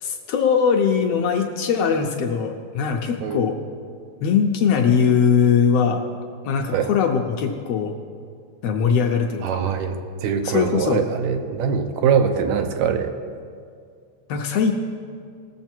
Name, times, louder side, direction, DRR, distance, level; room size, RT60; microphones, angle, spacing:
voice 1, 0.0-3.6 4.2-6.0 6.5-7.9 8.6-9.6 10.4-11.1 14.3-14.7, left 6 dB, 75° left, 3 dB, 1.6 m, -20 dB
voice 2, 9.4-13.1, right 7 dB, 80° right, 6 dB, 2.0 m, -22 dB
19.5 x 7.0 x 4.4 m, 2.2 s
omnidirectional pair, 3.4 m